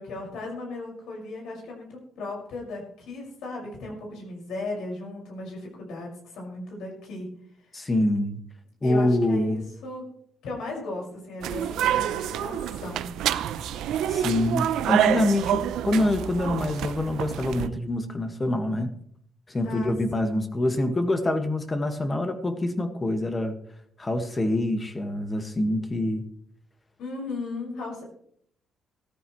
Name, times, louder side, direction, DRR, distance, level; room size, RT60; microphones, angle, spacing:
voice 1, 0.0-7.3 7.7-7.9 8.8-10.0 10.4-13.1 19.6-20.5 27.0-28.0, left 2 dB, 80° left, -2 dB, 5.7 m, -36 dB
voice 2, 7.7-8.4 8.8-9.6 14.1-18.9 19.5-23.6 24.0-26.2, left 1 dB, 25° left, 7 dB, 1.7 m, -25 dB
sound 1, 11.4-17.7, right 10 dB, 85° right, 0.6 m, -27 dB
15.5 x 13.5 x 3.2 m, 0.65 s
cardioid pair, 90°, 0 cm